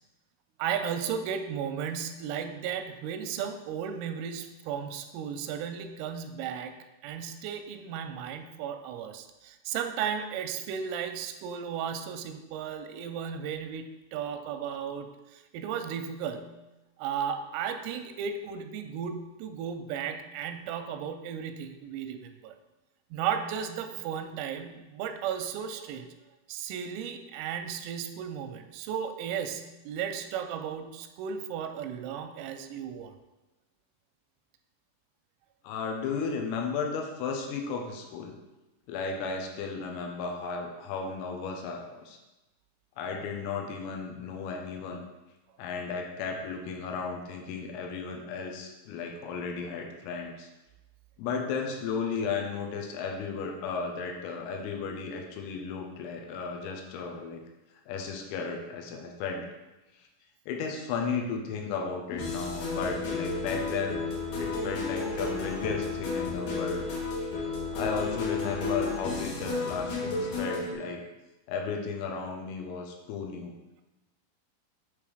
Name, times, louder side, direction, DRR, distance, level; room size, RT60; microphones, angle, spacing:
voice 1, 0.6-6.8 7.0-16.6 17.0-22.5 23.1-26.1 26.5-33.1, right 8 dB, 85° right, 7 dB, 3.2 m, -35 dB
voice 2, 35.7-38.4 38.9-42.2 43.0-45.1 45.6-50.5 51.2-57.4 57.9-59.5 60.5-66.9 67.1-67.3 67.7-71.0 71.5-73.5, left 5 dB, 85° left, 2 dB, 3.4 m, -34 dB
sound 1, 62.1-70.7, left 3 dB, 70° left, 2.0 m, -32 dB
8.6 x 3.5 x 4.9 m, 1.0 s
omnidirectional pair, 5.9 m